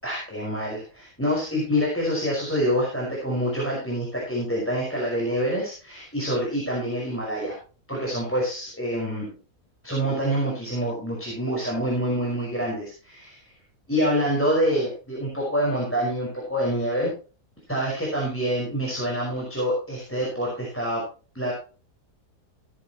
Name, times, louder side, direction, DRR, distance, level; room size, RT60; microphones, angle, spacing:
voice 1, 0.0-7.6 7.9-9.3 9.8-13.4 13.9-17.1 17.7-21.0 21.3-21.5, equal, 5° left, -4 dB, 5.4 m, -26 dB
18.5 x 9.3 x 3.1 m, 0.35 s
omnidirectional pair, 1.8 m